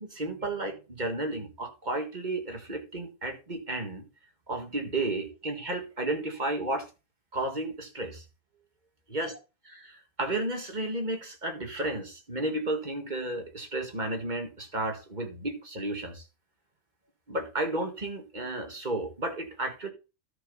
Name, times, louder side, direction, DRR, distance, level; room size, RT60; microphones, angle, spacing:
voice 1, 0.2-4.1 4.5-6.9 7.3-8.2 9.1-9.3 9.7-16.2 17.3-19.9, right 2 dB, 30° right, 1.9 m, -32 dB
13.0 x 5.4 x 4.0 m
omnidirectional pair, 1.5 m